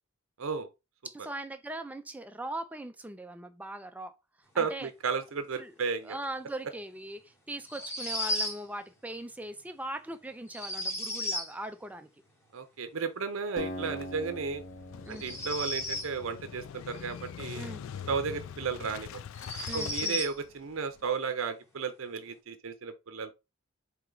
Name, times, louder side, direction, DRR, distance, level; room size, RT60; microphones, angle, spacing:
voice 1, 1.0-4.1 4.5-4.9 5.5-5.7 6.0-12.1 15.0-15.2 17.5-17.8 19.7-20.2, right 1 dB, 5° right, 0.4 m, -40 dB
voice 2, 4.6-6.2 12.5-14.6 15.1-17.7 18.1-19.2 19.7-23.3, right 5 dB, 70° right, 0.6 m, -34 dB
sound 1, 7.6-8.6 10.5-11.5 15.1-16.1 18.3-18.4 19.3-20.3, left 1 dB, 10° left, 1.1 m, -34 dB
Acoustic guitar, 13.6-17.1, equal, 35° left, 0.8 m, -43 dB
Motorcycle / Engine starting, 13.9-21.1, left 8 dB, 70° left, 0.3 m, -44 dB
4.5 x 2.9 x 3.8 m
head